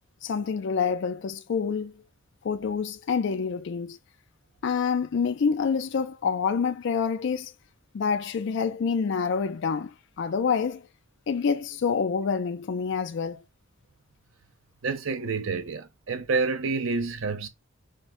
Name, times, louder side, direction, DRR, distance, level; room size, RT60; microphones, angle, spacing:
voice 1, 0.2-2.0 2.4-4.0 4.6-7.5 7.9-10.9 11.3-13.4, left 6 dB, 65° left, 0.4 m, -27 dB
voice 2, 14.8-17.5, right 4 dB, 80° right, 0.7 m, -28 dB
5.1 x 2.1 x 3.8 m
head